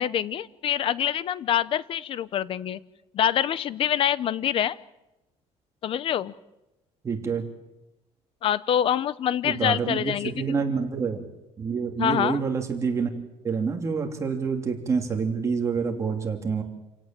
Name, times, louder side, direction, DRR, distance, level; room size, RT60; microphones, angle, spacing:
voice 1, 0.0-2.8 3.1-4.8 5.8-6.3 8.4-10.6 12.0-12.4, left 10 dB, 50° left, 18 dB, 0.8 m, -25 dB
voice 2, 7.0-7.4 9.4-11.3 11.6-13.1 13.4-16.6, right 5 dB, 25° right, 2 dB, 3.0 m, -27 dB
28.0 x 17.5 x 7.6 m, 1.0 s
cardioid pair, 155°, 12 cm